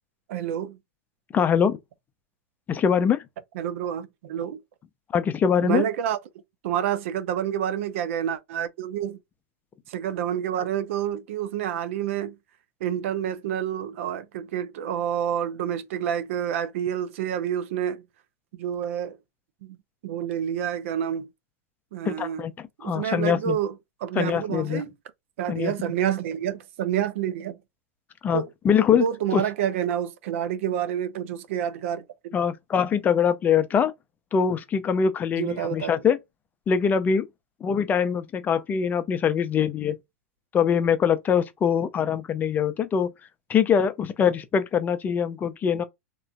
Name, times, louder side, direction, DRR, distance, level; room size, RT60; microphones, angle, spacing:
voice 1, 0.3-0.8 3.5-4.6 5.6-6.2 6.6-9.2 9.9-12.3 12.8-18.0 18.6-19.2 19.6-19.8 20.0-21.3 21.9-22.5 22.8-23.8 24.0-24.9 25.4-27.6 28.3-28.5 29.0-32.0 35.4-35.9, right 9 dB, 65° right, 0.5 m, -28 dB
voice 2, 1.3-1.8 2.7-3.2 5.1-5.8 22.1-22.5 22.8-23.6 24.2-24.8 25.5-25.7 28.2-29.0 29.3-29.4 32.3-33.9 34.3-36.2 36.7-37.3 37.6-40.0 40.5-43.1 43.5-45.8, left 7 dB, 25° left, 0.4 m, -23 dB
3.0 x 2.4 x 2.2 m
hypercardioid pair, 120°, 8 cm